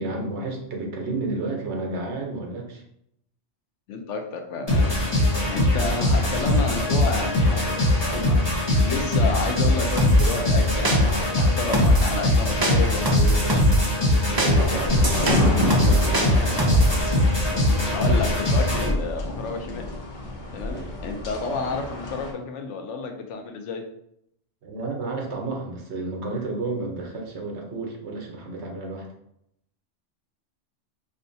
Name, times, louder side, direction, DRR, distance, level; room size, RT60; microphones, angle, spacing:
voice 1, 0.0-2.8 14.1-16.4 20.7-21.0 21.7-21.8 24.6-29.1, right 2 dB, 70° right, 1 dB, 1.1 m, -31 dB
voice 2, 3.9-5.0 5.5-7.8 8.8-13.7 16.7-16.9 17.5-19.9 20.5-20.8 21.0-23.8, left 4 dB, 80° left, 5 dB, 0.9 m, -31 dB
sound 1, 4.7-18.9, left 1 dB, 25° left, 1.0 m, -21 dB
sound 2, 10.0-10.4 10.8-11.3 11.7-12.2 12.6-13.9 14.4-17.0, right 1 dB, 35° right, 0.3 m, -22 dB
sound 3, 14.8-22.3, left 2 dB, 45° left, 0.8 m, -30 dB
5.3 x 2.2 x 2.6 m, 0.75 s
omnidirectional pair, 1.2 m